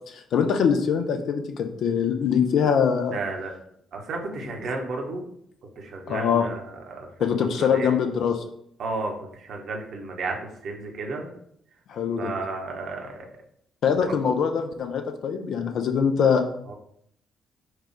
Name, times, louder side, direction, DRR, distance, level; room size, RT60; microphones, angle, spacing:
voice 1, 0.0-3.2 6.1-6.5 7.2-8.4 11.9-12.3 13.8-16.4, left 7 dB, 60° left, 5 dB, 0.5 m, -23 dB
voice 2, 3.1-3.5 3.9-5.2 5.8-7.1 7.6-7.9 8.8-10.4 10.6-11.3 12.2-13.3 14.2-14.3 16.7-16.8, right 3 dB, 55° right, 1 dB, 0.9 m, -32 dB
4.7 x 2.4 x 4.4 m, 0.71 s
figure-of-eight pair, 40°, 0 cm